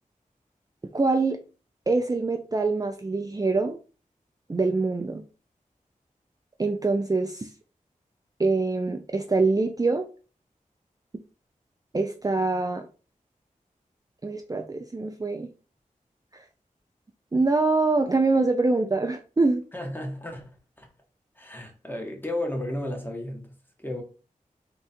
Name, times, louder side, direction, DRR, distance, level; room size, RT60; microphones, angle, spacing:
voice 1, 0.9-1.4 1.9-3.8 4.5-5.2 6.6-7.5 8.4-10.1 11.9-12.9 14.2-15.5 16.3-16.4 17.3-19.6, right 3 dB, 25° right, 0.5 m, -24 dB
voice 2, 19.7-20.5 20.8-20.9 21.4-24.0, left 1 dB, 15° left, 1.1 m, -33 dB
3.7 x 2.4 x 4.2 m
wide cardioid pair, 50°, 14 cm